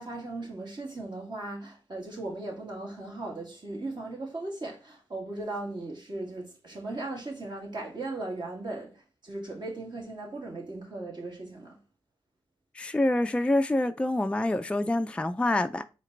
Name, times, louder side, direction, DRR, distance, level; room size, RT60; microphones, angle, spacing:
voice 1, 0.0-8.9 9.2-11.8, right 2 dB, 45° right, 1.9 m, -37 dB
voice 2, 12.8-15.8, left 1 dB, 10° left, 0.4 m, -26 dB
4.3 x 2.9 x 3.9 m
supercardioid pair, 45°, 10 cm